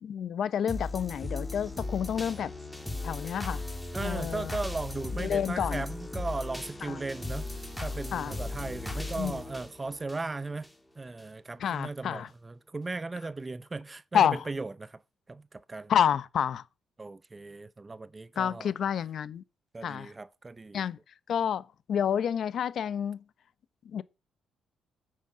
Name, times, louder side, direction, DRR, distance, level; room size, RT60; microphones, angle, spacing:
voice 1, 0.0-2.5 3.0-3.6 4.0-4.5 5.2-5.8 6.8-7.0 8.1-8.3 9.2-9.4 11.6-12.3 14.1-14.4 15.9-16.6 18.4-19.4 19.8-20.1 20.7-21.0 21.3-23.2 23.8-24.0, left 8 dB, 65° left, 0.9 m, -29 dB
sound 1, 0.7-10.7 11.2-11.3, left 2 dB, 5° left, 2.4 m, -37 dB
voice 2, 3.9-7.5 7.8-10.7 11.0-15.0 15.3-15.9 17.0-18.7 19.7-20.8, right 3 dB, 25° right, 0.5 m, -37 dB
9.3 x 6.6 x 8.0 m
cardioid pair, 90°, 0 cm